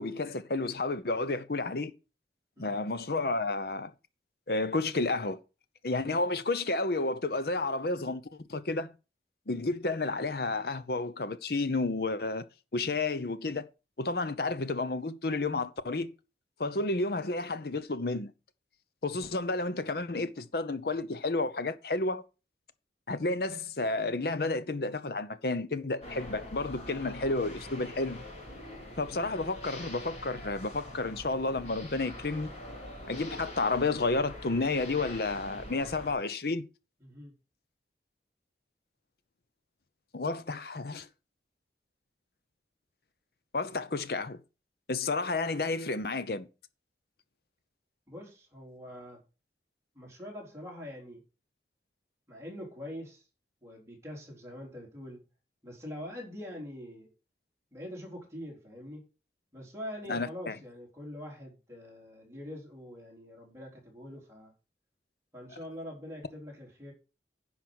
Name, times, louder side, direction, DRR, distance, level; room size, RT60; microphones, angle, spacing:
voice 1, 0.0-1.9 2.6-3.9 4.5-5.4 5.8-8.9 9.5-12.5 12.7-13.6 14.0-16.1 16.6-18.3 19.0-22.2 23.1-28.2 29.0-32.5 33.1-36.7 40.1-41.1 43.5-44.4 44.9-46.5 60.1-60.5, left 3 dB, 60° left, 0.8 m, -31 dB
sound 1, 26.0-36.1, left 1 dB, 35° left, 3.9 m, -44 dB
voice 2, 37.0-37.3 48.1-49.2 50.0-51.2 52.3-53.2 53.6-55.2 55.6-57.1 57.7-59.0 59.5-64.5 65.3-66.9, equal, 15° right, 3.8 m, -44 dB
10.5 x 5.7 x 6.3 m
head